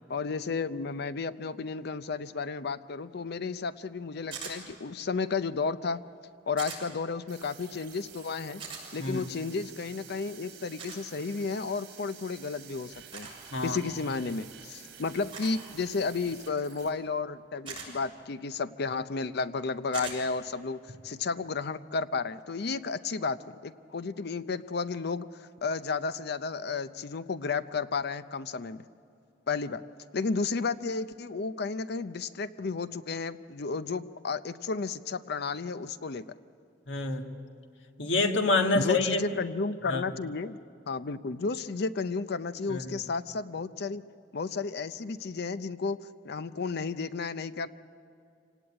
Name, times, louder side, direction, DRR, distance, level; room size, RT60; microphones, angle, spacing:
voice 1, 0.1-6.0 6.5-8.6 8.9-13.3 13.6-28.8 29.5-29.8 30.1-36.2 38.7-40.6 40.9-44.0 44.3-47.7, left 4 dB, 60° left, 13 dB, 0.6 m, -32 dB
sound 1, 4.3-4.6 6.6-6.8 8.6-8.8 10.8-11.0 13.1-13.3 15.3-15.6 17.6-17.9 19.9-20.2, right 5 dB, 30° right, 6.6 m, -39 dB
sound 2, 7.3-16.9, right 8 dB, 65° right, 4.0 m, -50 dB
voice 2, 36.9-37.3 38.0-39.4 39.9-40.0 42.7-42.9, left 3 dB, 85° left, 5 dB, 1.6 m, -27 dB
26.5 x 18.0 x 8.7 m, 2.5 s
head